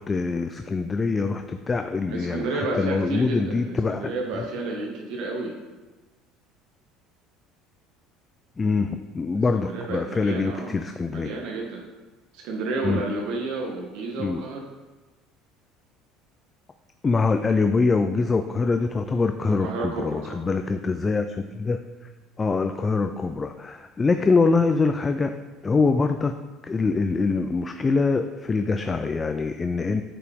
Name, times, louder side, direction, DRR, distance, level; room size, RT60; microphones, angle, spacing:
voice 1, 0.0-4.4 8.6-11.3 12.8-13.0 14.2-14.4 17.0-21.8 22.4-25.3 25.6-26.3 26.6-30.0, left 4 dB, 20° left, 7 dB, 0.3 m, -24 dB
voice 2, 2.1-5.5 9.5-10.8 11.1-11.8 12.3-14.7 19.4-20.4, right 3 dB, 70° right, 0 dB, 1.1 m, -31 dB
8.6 x 4.7 x 3.5 m, 1.2 s
cardioid pair, 125°, 0 cm